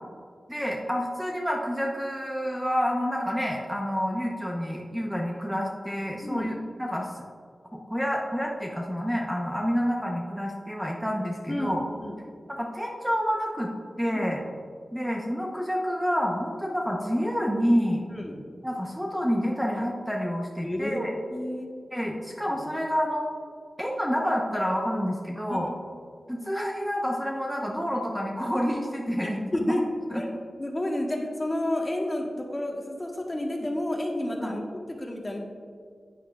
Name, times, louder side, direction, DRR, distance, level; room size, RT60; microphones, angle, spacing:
voice 1, 0.5-7.1 7.7-11.8 12.5-13.7 14.0-14.4 14.9-18.0 18.6-21.1 21.9-23.3 23.8-25.7 26.3-29.8 30.1-30.2 34.4-34.6, equal, 5° right, -1 dB, 0.9 m, -28 dB
voice 2, 11.5-12.2 14.1-14.2 18.1-18.4 20.6-21.0 21.3-21.7 22.5-22.6 25.5-25.6 29.5-29.8 30.1-30.3 30.6-34.6 35.0-35.4, left 1 dB, 25° left, 1 dB, 1.3 m, -30 dB
9.8 x 9.2 x 2.4 m, 2.1 s
wide cardioid pair, 70°, 0 cm